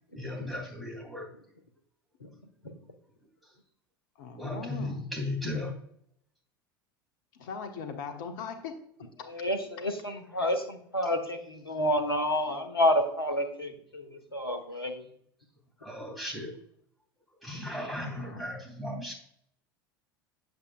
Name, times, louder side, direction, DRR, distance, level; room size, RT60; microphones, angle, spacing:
voice 1, 0.1-1.3 4.3-5.7 15.8-16.5 17.4-19.1, left 1 dB, ahead, -2 dB, 3.0 m, -36 dB
voice 2, 4.2-5.0 7.3-8.7 18.2-18.5, left 5 dB, 55° left, 6 dB, 1.3 m, -39 dB
voice 3, 9.3-15.0, left 1 dB, 85° left, 7 dB, 1.1 m, -29 dB
8.4 x 8.1 x 2.4 m, 0.68 s
figure-of-eight pair, 75°, 12 cm